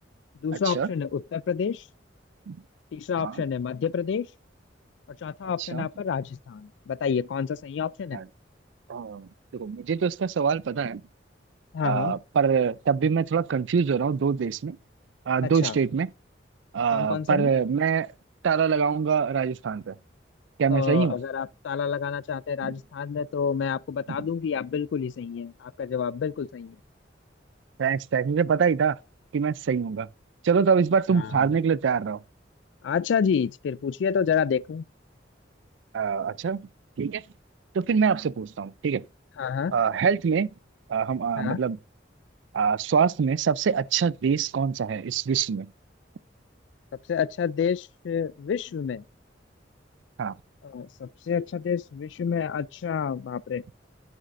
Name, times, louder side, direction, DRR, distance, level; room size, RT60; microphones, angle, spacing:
voice 1, 0.4-1.8 2.9-4.3 5.1-8.2 11.7-12.2 15.4-15.8 16.9-17.5 20.7-26.8 31.1-31.5 32.8-34.8 39.4-39.8 41.4-41.6 47.1-49.0 50.6-53.6, left 7 dB, 75° left, 0.3 m, -29 dB
voice 2, 8.9-11.0 11.8-14.8 15.3-16.1 16.7-18.1 18.4-19.9 20.6-21.1 22.6-22.7 27.8-29.0 29.3-30.1 30.4-32.2 35.9-36.7 37.0-37.2 37.7-39.1 39.7-40.5 40.9-41.8 42.5-45.7 50.2-50.3, right 6 dB, 85° right, 0.4 m, -24 dB
9.6 x 8.2 x 2.6 m
head